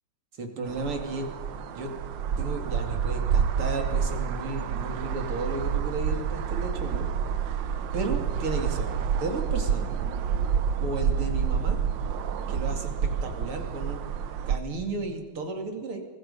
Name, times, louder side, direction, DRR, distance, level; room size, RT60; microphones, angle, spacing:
voice 1, 0.4-1.3 1.7-1.9 2.4-7.1 7.9-9.9 10.8-11.8 12.5-14.0 14.5-16.1, right 3 dB, 90° right, 4 dB, 3.5 m, -33 dB
sound 1, 0.6-14.6, right 7 dB, 65° right, 1.5 m, -28 dB
24.5 x 20.5 x 5.5 m, 1.3 s
omnidirectional pair, 2.4 m